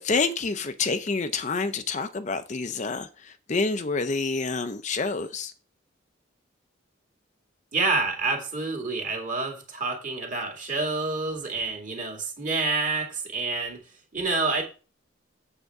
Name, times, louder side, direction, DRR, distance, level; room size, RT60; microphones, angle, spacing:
voice 1, 0.0-5.5, left 4 dB, 35° left, 0.5 m, -28 dB
voice 2, 7.7-13.8 14.1-14.6, right 3 dB, 40° right, 2.2 m, -28 dB
7.9 x 7.4 x 3.5 m
head